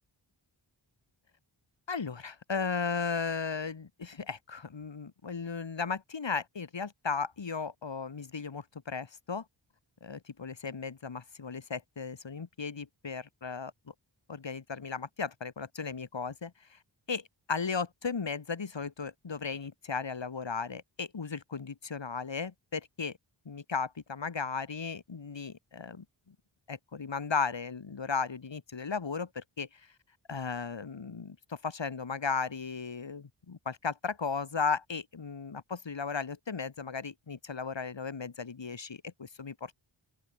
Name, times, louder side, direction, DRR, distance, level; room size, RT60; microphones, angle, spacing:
voice 1, 1.9-9.5 10.0-13.7 14.3-16.8 17.1-23.2 23.5-26.4 26.7-29.9 30.3-39.7, left 5 dB, 65° left, 3.7 m, -36 dB
open air
cardioid pair, 50°, 47 cm